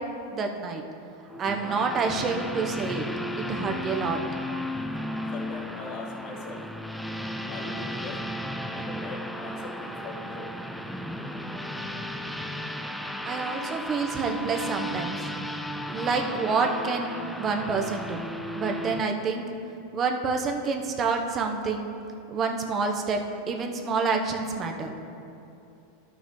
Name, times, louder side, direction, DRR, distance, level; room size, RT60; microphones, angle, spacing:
voice 1, 0.3-0.8 1.4-3.0 3.4-4.2 13.3-15.1 15.9-17.1 17.4-18.2 18.5-19.5 19.9-21.9 22.3-23.2 23.5-24.9, right 4 dB, 30° right, 3 dB, 1.0 m, -28 dB
sound 1, 1.3-19.0, equal, ahead, 0.5 m, -34 dB
voice 2, 5.3-6.6 7.5-8.2 8.7-10.5, left 3 dB, 50° left, -1 dB, 1.7 m, -40 dB
13.0 x 6.1 x 3.2 m, 2.8 s
hypercardioid pair, 115°, 0 cm